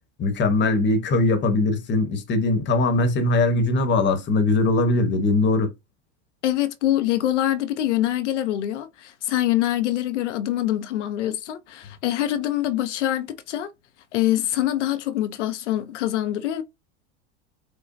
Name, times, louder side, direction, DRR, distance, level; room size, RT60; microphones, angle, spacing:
voice 1, 0.2-5.7, left 2 dB, 30° left, 1.0 m, -21 dB
voice 2, 6.4-13.7 14.1-16.6, left 13 dB, 85° left, 0.6 m, -24 dB
5.1 x 2.2 x 2.6 m
hypercardioid pair, 95°, 35 cm